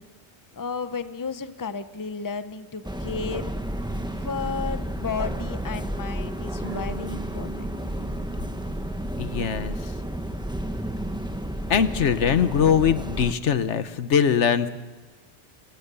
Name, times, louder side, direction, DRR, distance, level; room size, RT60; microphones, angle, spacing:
voice 1, 0.6-3.5 4.1-7.7, left 5 dB, 20° left, 11 dB, 0.8 m, -33 dB
sound 1, 2.8-13.3, right 1 dB, 5° right, 1.0 m, -31 dB
sound 2, 6.6-9.9 10.2-10.3, right 2 dB, 45° left, 6.2 m, -43 dB
voice 2, 9.2-9.7 11.7-14.7, left 7 dB, 80° left, 12 dB, 1.2 m, -22 dB
24.5 x 18.5 x 6.9 m, 1.3 s
omnidirectional pair, 1.2 m